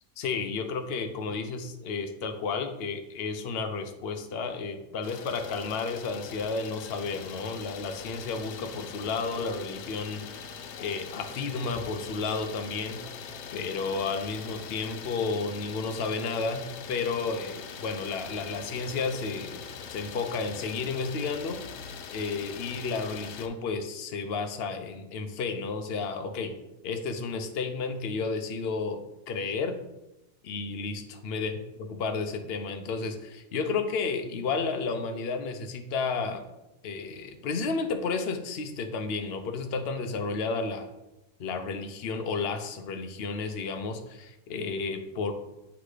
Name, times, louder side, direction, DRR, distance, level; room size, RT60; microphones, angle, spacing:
voice 1, 0.2-10.2 10.8-13.0 13.5-16.6 16.9-19.6 19.9-21.6 22.1-26.5 26.8-29.8 30.4-31.5 31.9-36.4 36.8-40.9 41.4-45.3, left 4 dB, 60° left, 6 dB, 0.6 m, -32 dB
Idling, 5.0-23.5, left 6 dB, 85° left, 1.2 m, -42 dB
8.2 x 3.0 x 4.8 m, 0.94 s
omnidirectional pair, 1.8 m